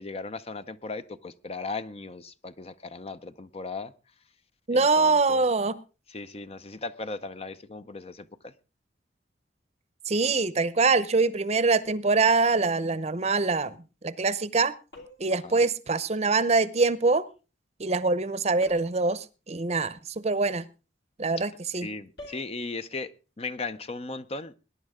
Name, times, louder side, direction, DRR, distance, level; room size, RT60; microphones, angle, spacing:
voice 1, 0.0-3.9 4.7-5.4 6.1-8.5 15.4-15.6 21.8-23.1 23.4-24.5, left 3 dB, 35° left, 12 dB, 0.7 m, -37 dB
voice 2, 4.7-5.8 10.1-13.8 14.0-14.7 15.2-17.3 17.8-20.0 20.2-20.7 21.2-21.9, right 3 dB, 35° right, 16 dB, 0.8 m, -24 dB
sound 1, 14.9-15.4 18.6-19.1 22.2-22.5, left 2 dB, 70° left, 4.4 m, -46 dB
21.0 x 10.5 x 3.7 m, 0.33 s
head